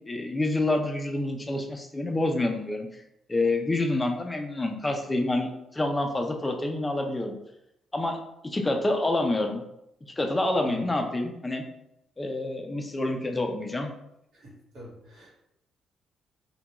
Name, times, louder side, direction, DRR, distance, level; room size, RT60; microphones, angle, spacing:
voice 1, 0.1-2.9 3.3-7.4 7.9-8.2 8.4-9.6 10.2-11.6 12.2-13.9, left 2 dB, 20° left, 4 dB, 0.4 m, -27 dB
voice 2, 14.7-15.4, equal, 70° right, -5 dB, 1.2 m, -46 dB
2.3 x 2.2 x 2.8 m, 0.82 s
cardioid pair, 90°, 0 cm